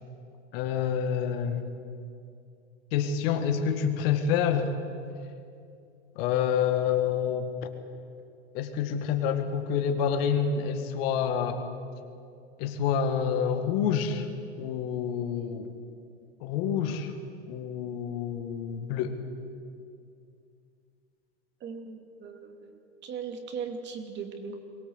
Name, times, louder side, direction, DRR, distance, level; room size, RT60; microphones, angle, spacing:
voice 1, 0.5-1.7 2.9-4.8 6.2-7.7 8.5-11.6 12.6-14.3 14.6-15.7 16.4-17.1 17.5-19.2, left 7 dB, 55° left, 7 dB, 2.2 m, -28 dB
voice 2, 21.6-24.6, right 6 dB, 30° right, 5 dB, 2.6 m, -39 dB
22.5 x 17.5 x 8.2 m, 2.4 s
hypercardioid pair, 125°, 35 cm